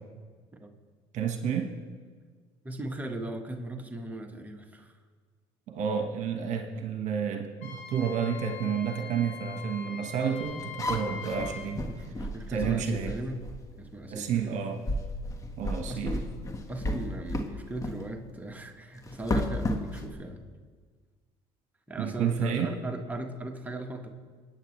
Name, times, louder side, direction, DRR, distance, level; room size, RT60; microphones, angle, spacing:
voice 1, 1.1-1.7 5.7-11.8 12.5-13.1 14.1-14.8 15.6-16.1 22.0-22.7, right 7 dB, 60° right, 4 dB, 1.5 m, -30 dB
voice 2, 2.6-5.0 11.8-13.4 13.8-14.6 15.9-16.3 16.7-20.4 21.9-24.1, right 1 dB, 10° right, 3 dB, 1.5 m, -38 dB
Wind instrument woodwind instrument, 7.6-11.7, left 6 dB, 60° left, 2.4 m, -43 dB
sound 1, 10.4-13.7 14.3-14.5 14.8-17.5 17.8-18.0 19.0-20.1, left 1 dB, 25° left, 1.6 m, -33 dB
26.0 x 9.3 x 3.3 m, 1.5 s
supercardioid pair, 85°, 14 cm